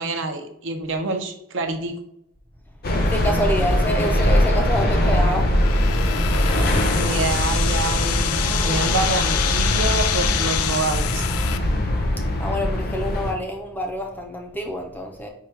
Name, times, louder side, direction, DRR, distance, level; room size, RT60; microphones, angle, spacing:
voice 1, 0.0-1.9 6.9-11.2, right 3 dB, 60° right, 5 dB, 0.6 m, -27 dB
sound 1, 2.8-13.3, left 1 dB, 45° left, 0.7 m, -21 dB
voice 2, 3.0-5.5 12.4-15.3, equal, 10° left, 2 dB, 0.5 m, -27 dB
sound 2, 5.5-11.6, left 9 dB, 75° left, 0.4 m, -26 dB
4.7 x 2.3 x 4.6 m, 0.74 s
head